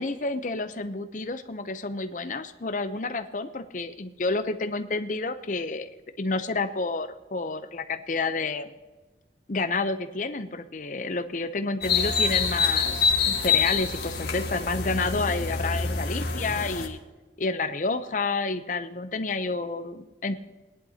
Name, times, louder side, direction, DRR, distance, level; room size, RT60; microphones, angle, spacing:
voice 1, 0.0-5.9 6.2-8.7 9.5-17.0 17.4-20.4, left 3 dB, 45° left, 9 dB, 0.6 m, -30 dB
Pagoeta natural reserve, 11.8-16.9, left 5 dB, 60° left, 1.6 m, -26 dB
18.0 x 11.0 x 2.8 m, 1.2 s
head